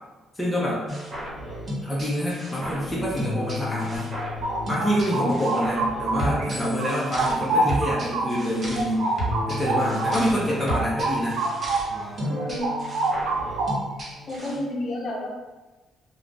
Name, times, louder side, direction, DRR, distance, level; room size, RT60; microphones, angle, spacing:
voice 1, 0.3-0.9 1.8-4.1 4.7-9.1 9.5-11.4, equal, 10° left, -6 dB, 0.7 m, -26 dB
sound 1, 0.9-14.6, equal, 45° right, 1.2 m, -33 dB
sound 2, 3.9-6.5 6.8-12.0 12.3-14.0, right 2 dB, 85° right, 0.4 m, -27 dB
voice 2, 5.1-5.5 12.3-13.5 14.3-15.3, left 1 dB, 50° left, -7 dB, 0.7 m, -32 dB
2.4 x 2.3 x 3.8 m, 1.2 s
cardioid pair, 90°, 0 cm